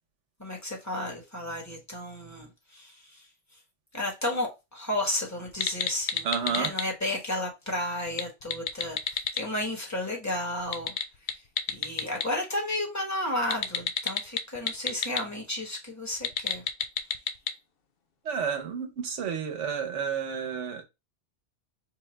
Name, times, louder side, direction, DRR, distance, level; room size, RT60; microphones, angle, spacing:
voice 1, 0.4-3.3 3.9-10.9 11.3-11.4 11.7-16.6, left 1 dB, 15° left, 1.3 m, -33 dB
sound 1, 5.5-6.8 8.1-9.4 10.6-12.3 13.5-15.2 16.1-17.5, left 7 dB, 60° left, 0.7 m, -30 dB
voice 2, 6.2-6.7 18.2-20.8, right 7 dB, 85° right, 1.2 m, -31 dB
4.9 x 2.3 x 3.2 m
omnidirectional pair, 1.2 m